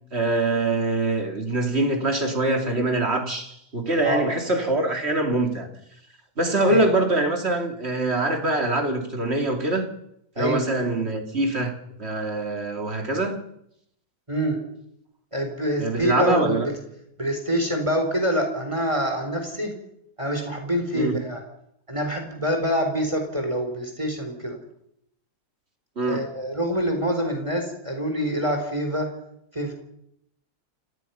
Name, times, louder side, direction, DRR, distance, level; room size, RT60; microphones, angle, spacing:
voice 1, 0.1-5.7 6.4-9.9 10.4-11.7 12.0-13.4 15.8-16.7 20.9-21.2 26.0-26.3, right 2 dB, 40° right, 5 dB, 3.2 m, -24 dB
voice 2, 15.3-16.6 17.2-19.7 20.2-21.4 21.9-24.6 26.1-29.1 29.5-29.7, equal, 20° right, 4 dB, 4.0 m, -25 dB
29.0 x 18.0 x 5.8 m, 0.74 s
omnidirectional pair, 1.7 m